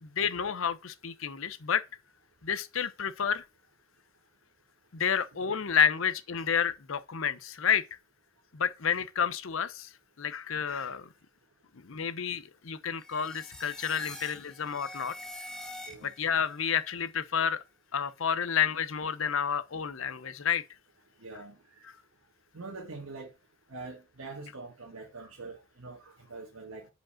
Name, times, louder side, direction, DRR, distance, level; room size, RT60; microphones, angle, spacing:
voice 1, 0.0-1.9 2.4-3.4 4.9-7.8 8.5-9.9 10.2-11.1 11.8-15.1 16.0-17.6 17.9-20.6, left 7 dB, 70° left, 0.7 m, -30 dB
sound 1, 13.0-16.4, left 1 dB, 5° left, 0.8 m, -44 dB
voice 2, 21.2-21.9 22.5-23.3 23.7-26.9, right 3 dB, 80° right, 1.3 m, -44 dB
5.1 x 4.9 x 5.8 m
head